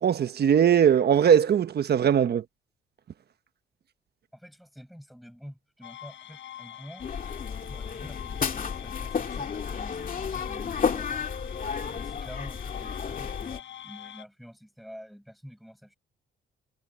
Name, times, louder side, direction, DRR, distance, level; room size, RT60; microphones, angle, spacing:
voice 1, 0.0-2.4, right 8 dB, 55° right, 1.2 m, -20 dB
voice 2, 4.3-7.1 7.7-11.3 11.9-16.0, equal, ahead, 7.5 m, -48 dB
sound 1, 5.8-14.2, left 11 dB, 75° left, 4.3 m, -44 dB
sound 2, 7.0-13.6, left 6 dB, 45° left, 2.4 m, -32 dB
cardioid pair, 90°, 20 cm